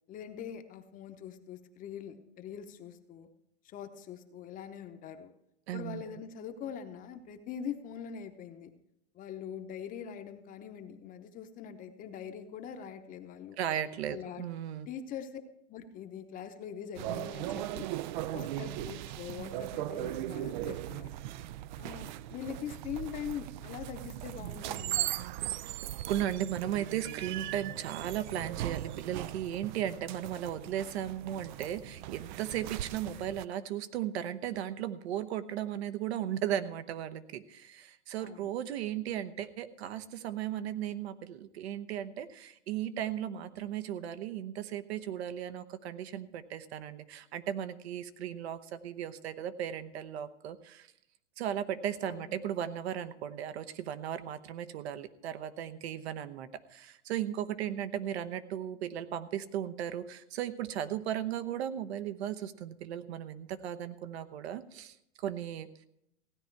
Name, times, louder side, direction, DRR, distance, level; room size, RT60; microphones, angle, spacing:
voice 1, 0.1-3.3 3.6-5.3 5.7-8.7 9.1-13.6 14.1-14.4 14.9-15.4 15.7-17.9 18.3-21.1 21.8-25.3 38.2-38.5 52.0-52.3, left 8 dB, 25° left, 8 dB, 0.9 m, -43 dB
voice 2, 5.7-6.2 13.5-14.9 26.1-50.9 51.4-65.7, right 10 dB, 65° right, 12 dB, 1.0 m, -36 dB
sound 1, 17.0-33.4, right 14 dB, 45° right, 0.4 m, -38 dB
16.0 x 9.5 x 4.6 m, 0.79 s
hypercardioid pair, 140°, 35 cm